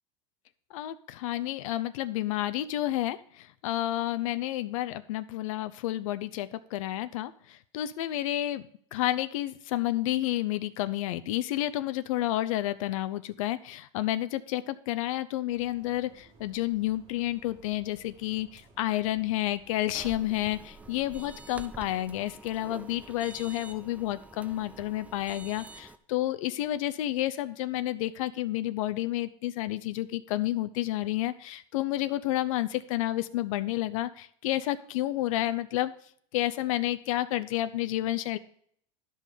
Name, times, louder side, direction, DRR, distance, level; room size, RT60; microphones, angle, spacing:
voice 1, 0.7-8.6 8.9-35.9 36.3-38.4, left 14 dB, 85° left, 13 dB, 0.5 m, -30 dB
sound 1, 15.5-21.5, right 1 dB, 25° right, 1.6 m, -58 dB
sound 2, 19.9-26.0, right 3 dB, 10° right, 0.4 m, -47 dB
11.0 x 5.4 x 5.0 m, 0.63 s
supercardioid pair, 145°, 17 cm